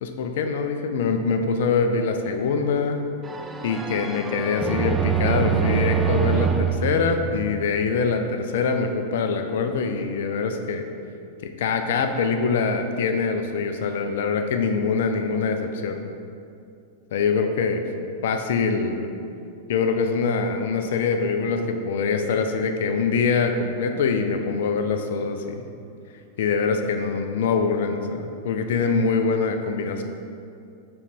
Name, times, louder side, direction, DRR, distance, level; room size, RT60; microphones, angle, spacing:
voice 1, 0.0-3.0 3.6-10.8 11.6-16.1 17.1-17.8 18.2-19.1 19.7-25.6 26.4-30.0, left 5 dB, 55° left, 6 dB, 0.5 m, -24 dB
sound 1, 3.2-8.0, right 7 dB, 15° right, 0.3 m, -25 dB
5.7 x 5.2 x 4.5 m, 2.5 s
figure-of-eight pair, 90°, 0 cm